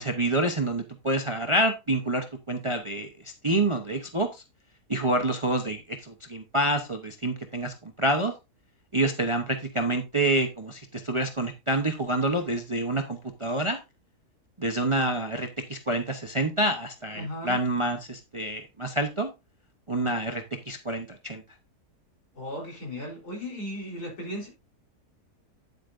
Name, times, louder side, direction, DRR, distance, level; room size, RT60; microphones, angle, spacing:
voice 1, 0.0-4.4 4.9-8.3 8.9-13.8 14.6-19.3 19.9-21.4, right 1 dB, 25° right, 0.8 m, -27 dB
voice 2, 17.1-17.6 22.3-24.5, equal, 75° left, 4.4 m, -36 dB
9.5 x 8.2 x 2.6 m
omnidirectional pair, 1.7 m